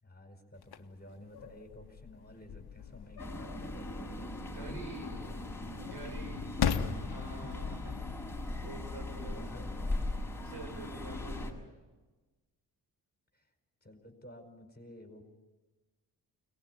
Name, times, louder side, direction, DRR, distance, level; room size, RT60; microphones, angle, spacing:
voice 1, 0.0-5.3 6.8-8.1 9.2-10.1 13.3-13.5 13.8-15.2, left 1 dB, 25° left, 5 dB, 4.9 m, -52 dB
sound 1, 0.6-11.5, left 7 dB, 65° left, 1.4 m, -40 dB
sound 2, 3.2-11.5, left 1 dB, 5° left, 6.6 m, -39 dB
voice 2, 4.4-5.2 5.7-6.5 7.1-8.0 8.6-9.7 10.4-11.6, right 1 dB, 70° right, 3 dB, 6.3 m, -47 dB
23.0 x 19.0 x 9.7 m, 1.2 s
supercardioid pair, 55°, 41 cm